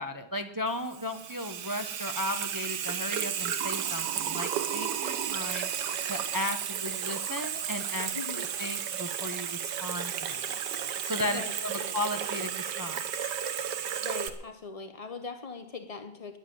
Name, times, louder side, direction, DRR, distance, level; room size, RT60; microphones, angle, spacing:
voice 1, 0.0-5.7 6.1-10.5 11.0-13.3, left 1 dB, 25° right, 8 dB, 0.4 m, -36 dB
Water tap faucet / Sink (filling or washing), 0.7-14.3, right 9 dB, 75° right, 1.6 m, -33 dB
voice 2, 8.1-8.5 11.3-11.5 11.8-11.9 14.0-16.4, left 4 dB, 45° left, 8 dB, 0.4 m, -40 dB
11.0 x 10.5 x 9.2 m, 0.81 s
omnidirectional pair, 1.9 m